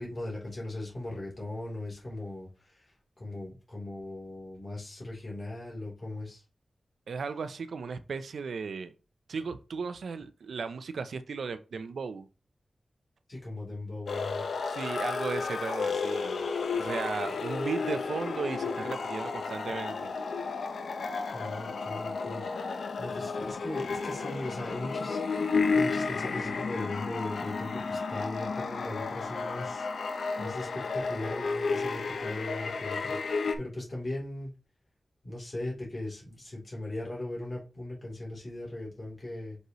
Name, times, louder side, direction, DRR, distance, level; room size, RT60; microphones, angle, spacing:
voice 1, 0.0-6.4 13.3-14.4 21.3-34.5 35.2-39.6, left 1 dB, 30° left, 3.3 m, -39 dB
voice 2, 7.1-8.9 9.3-12.3 14.7-16.4 16.8-20.1, right 5 dB, 80° right, 0.6 m, -36 dB
sound 1, 14.1-33.6, left 4 dB, 85° left, 0.8 m, -32 dB
6.1 x 5.4 x 3.1 m
wide cardioid pair, 115°, 0 cm